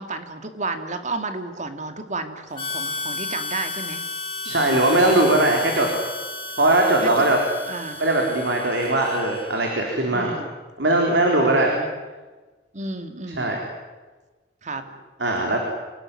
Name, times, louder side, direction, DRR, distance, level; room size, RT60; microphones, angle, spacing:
voice 1, 0.0-4.0 7.0-7.3 7.7-8.0 10.1-10.5 11.4-11.9 12.7-13.5 14.6-14.8, right 3 dB, 40° right, 7 dB, 2.5 m, -32 dB
Harmonica, 2.5-9.8, left 3 dB, 30° left, 4.1 m, -33 dB
voice 2, 4.4-5.9 6.6-7.4 8.0-10.3 10.8-11.7 13.4-13.6 15.2-15.6, right 2 dB, 75° right, 1 dB, 4.2 m, -20 dB
27.5 x 18.0 x 10.0 m, 1.3 s
head